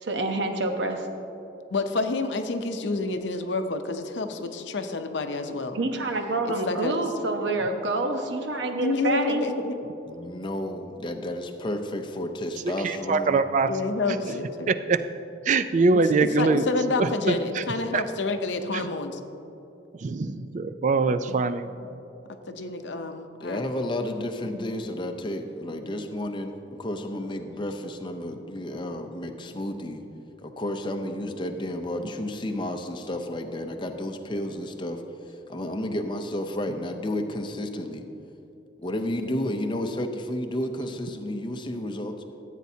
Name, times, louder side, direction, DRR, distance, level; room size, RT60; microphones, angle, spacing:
voice 1, 0.0-1.1 5.7-9.4, right 2 dB, 70° right, 5 dB, 0.8 m, -27 dB
voice 2, 1.7-5.8 6.5-6.9 8.7-9.8 13.7-14.7 15.9-19.2 21.3-21.4 21.8-22.0 22.5-23.7 24.4-24.7, left 3 dB, 70° left, 7 dB, 0.6 m, -29 dB
voice 3, 10.1-13.4 23.4-30.0 30.4-35.0 35.5-38.0 38.8-42.2, left 1 dB, 25° left, 5 dB, 0.5 m, -31 dB
voice 4, 12.8-13.7 14.7-15.0 15.5-16.6 17.0-17.3 17.9-18.0 18.7-18.9 20.0-21.7, right 4 dB, 40° right, 11 dB, 0.3 m, -23 dB
14.5 x 8.3 x 2.7 m, 2.9 s
head